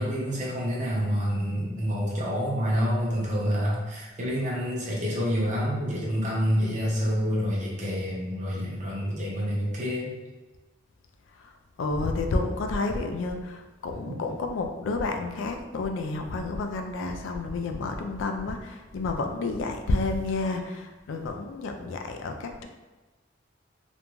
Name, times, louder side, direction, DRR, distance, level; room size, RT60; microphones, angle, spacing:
voice 1, 0.0-10.1 14.0-14.2, equal, 40° right, -5 dB, 0.7 m, -28 dB
voice 2, 11.3-22.7, left 3 dB, 80° left, 5 dB, 0.3 m, -30 dB
2.5 x 2.2 x 3.0 m, 1.2 s
head